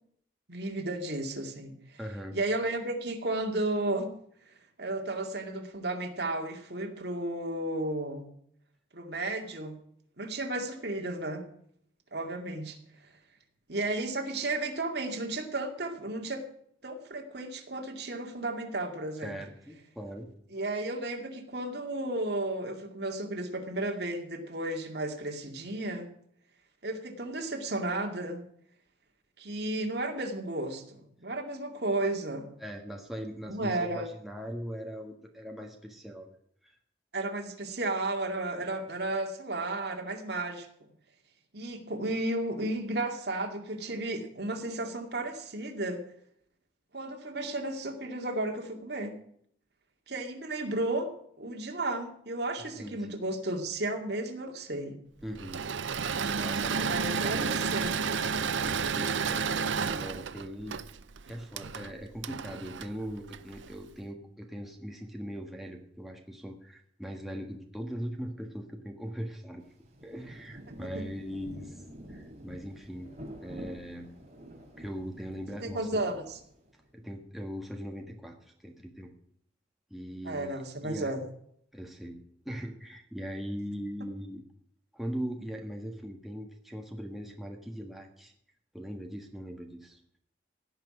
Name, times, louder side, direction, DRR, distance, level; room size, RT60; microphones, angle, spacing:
voice 1, 0.5-2.0 2.3-4.1 4.8-8.3 8.9-9.8 10.2-11.4 12.1-12.8 13.7-16.4 16.8-19.3 20.5-26.1 26.8-28.5 29.4-32.5 33.5-34.1 37.1-40.7 41.5-46.0 46.9-49.1 50.1-51.1 51.4-55.0 56.8-58.1 70.9-71.0 75.6-76.4 80.2-81.2, right 2 dB, 60° right, 3 dB, 2.4 m, -33 dB
voice 2, 2.0-2.4 19.2-20.3 32.6-36.4 36.6-36.8 52.8-53.2 55.2-55.7 56.3-57.6 58.4-60.8 61.3-69.6 70.0-73.1 73.4-74.1 74.8-76.0 76.9-79.1 79.9-81.1 81.7-84.4 84.9-88.3 88.7-90.0, equal, ahead, 1 dB, 1.5 m, -40 dB
Engine / Mechanisms, 55.4-63.8, right 5 dB, 85° right, 0.6 m, -31 dB
Rain, 69.6-76.8, equal, 35° right, 3.4 m, -48 dB
17.0 x 6.0 x 9.8 m, 0.67 s
head